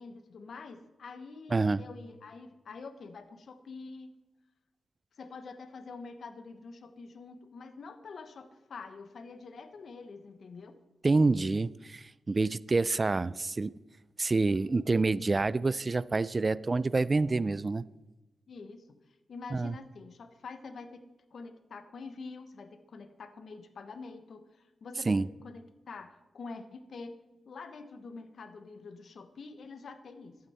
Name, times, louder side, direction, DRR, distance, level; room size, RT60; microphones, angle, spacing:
voice 1, 0.0-4.1 5.2-10.8 18.5-19.0 19.3-21.0 21.3-25.2 25.4-27.1 27.4-30.4, left 4 dB, 65° left, 10 dB, 0.9 m, -46 dB
voice 2, 1.5-1.8 11.0-13.7 14.2-17.9 19.5-19.7 25.1-25.3, right 3 dB, 35° right, 20 dB, 0.3 m, -27 dB
11.5 x 8.7 x 4.2 m, 1.1 s
cardioid pair, 60°, 0 cm